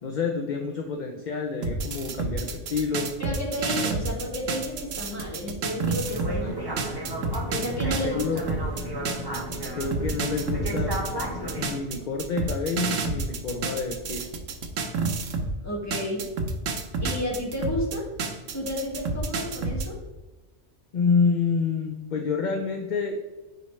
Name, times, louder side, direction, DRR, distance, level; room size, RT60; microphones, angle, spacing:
voice 1, 0.0-3.1 8.0-8.4 9.7-10.9 11.6-14.2 20.9-23.2, left 5 dB, 50° left, 3 dB, 0.6 m, -28 dB
sound 1, 1.6-6.4 6.8-15.5 15.9-19.9, right 3 dB, 85° right, 1.2 m, -30 dB
voice 2, 3.2-6.6 7.5-8.2 15.6-16.3 17.0-18.1 18.5-20.0, left 1 dB, 15° left, -4 dB, 1.9 m, -31 dB
sound 2, 6.0-11.8, right 1 dB, 20° right, 1.2 m, -33 dB
9.4 x 4.9 x 3.2 m, 1.2 s
omnidirectional pair, 1.3 m